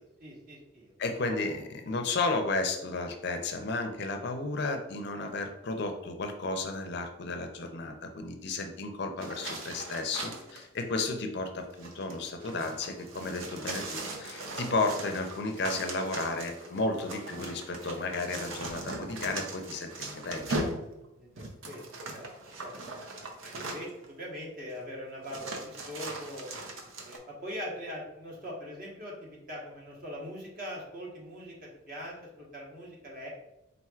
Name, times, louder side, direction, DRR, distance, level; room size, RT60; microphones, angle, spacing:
voice 1, 0.2-0.9 1.3-1.6 21.2-21.8 22.1-22.3 22.6-22.8 23.4-26.5 27.0-33.3, equal, 45° right, -3 dB, 1.2 m, -42 dB
voice 2, 1.0-19.9 20.2-20.6, left 3 dB, 55° left, 5 dB, 0.5 m, -33 dB
sound 1, 9.2-10.6 11.6-24.1 24.7-24.8 25.2-27.2, right 2 dB, 80° right, 0.7 m, -39 dB
4.4 x 3.8 x 2.4 m, 0.88 s
head